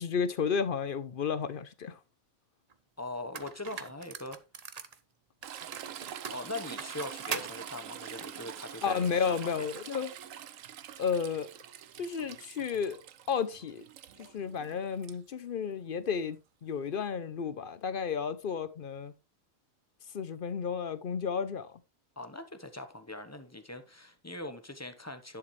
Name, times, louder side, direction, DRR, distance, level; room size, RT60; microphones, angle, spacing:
voice 1, 0.0-2.0 8.8-10.1 11.0-11.5 12.0-13.0 13.3-13.8 14.2-19.1 20.1-21.8, left 6 dB, 55° left, 0.6 m, -32 dB
sound 1, 2.7-2.8 3.3-5.0 5.4-7.5, right 6 dB, 40° right, 0.6 m, -40 dB
voice 2, 3.0-4.4 6.3-9.7 22.2-25.4, left 2 dB, 15° left, 0.8 m, -41 dB
Toilet flush / Trickle dribble, 5.4-15.1 16.9-17.0, right 10 dB, 70° right, 1.1 m, -45 dB
10.5 x 6.8 x 3.1 m
omnidirectional pair, 1.4 m